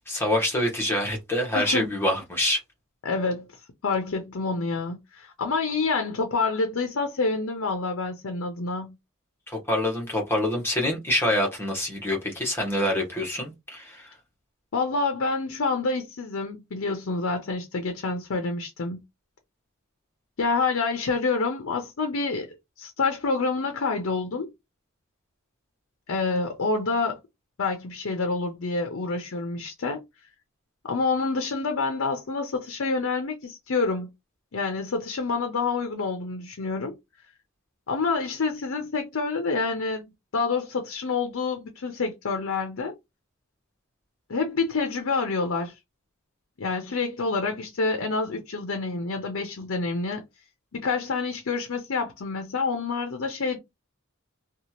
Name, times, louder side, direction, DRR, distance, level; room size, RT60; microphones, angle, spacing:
voice 1, 0.1-2.6 9.5-14.1, left 1 dB, 10° left, 1.1 m, -26 dB
voice 2, 1.5-1.9 3.0-8.9 14.7-19.0 20.4-24.5 26.1-27.2 27.6-30.0 30.8-34.1 34.5-36.9 37.9-42.9 44.3-45.8 46.6-50.2 50.7-53.6, left 4 dB, 70° left, 0.6 m, -27 dB
2.8 x 2.3 x 2.9 m
head